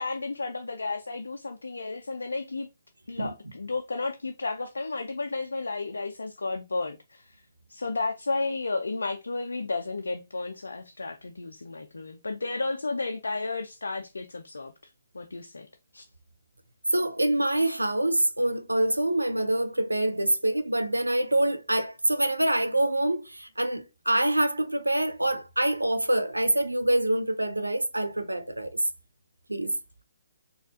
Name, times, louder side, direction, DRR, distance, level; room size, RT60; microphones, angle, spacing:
voice 1, 0.0-2.7 3.1-7.4 7.7-15.7 15.9-16.0, left 3 dB, 75° left, 0.4 m, -33 dB
voice 2, 16.9-28.8 29.5-29.8, right 1 dB, 90° right, 0.4 m, -25 dB
4.1 x 2.4 x 2.6 m
figure-of-eight pair, 135°, 0 cm